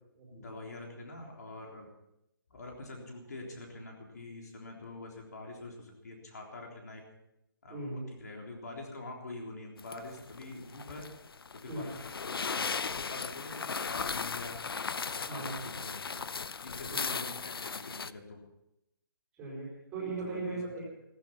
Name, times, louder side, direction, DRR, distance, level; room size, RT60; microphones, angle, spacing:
voice 1, 0.3-1.9 2.5-7.0 7.6-11.1 11.6-11.9 12.2-14.6 15.1-16.3 16.6-18.4 20.2-20.6, left 2 dB, 45° left, 0 dB, 3.7 m, -45 dB
voice 2, 7.7-8.0 11.7-11.9 15.2-15.7 16.9-17.2 19.4-20.9, right 3 dB, 5° right, -7 dB, 4.2 m, -39 dB
sound 1, 9.8-18.1, left 5 dB, 80° left, 0.7 m, -37 dB
16.0 x 14.5 x 5.8 m, 0.86 s
hypercardioid pair, 180°, 12 cm